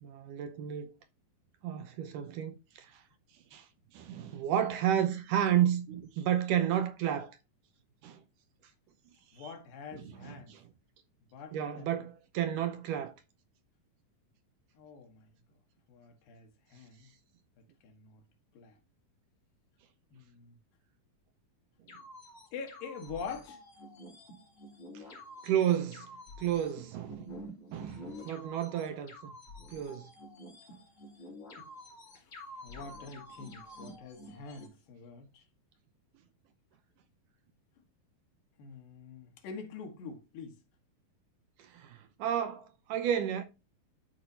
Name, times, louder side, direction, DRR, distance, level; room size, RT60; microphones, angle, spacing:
voice 1, 0.0-0.9 1.6-3.0 3.5-3.7 3.9-7.3 8.0-8.2 9.4-9.5 9.9-10.7 11.5-13.1 24.9-25.1 25.4-26.1 26.4-27.3 27.7-29.3 29.7-30.1 41.6-43.4, right 10 dB, 75° right, 2.1 m, -32 dB
voice 2, 9.3-10.5 11.3-11.9 14.7-15.3 15.9-17.1 17.8-18.2 18.5-18.8 20.1-20.6 22.5-23.6 30.7-30.8 31.5-31.7 32.1-35.4 38.6-40.6, left 5 dB, 75° left, 3.1 m, -45 dB
sound 1, 21.9-34.7, left 1 dB, 40° left, 3.6 m, -49 dB
12.5 x 4.7 x 2.8 m
omnidirectional pair, 4.1 m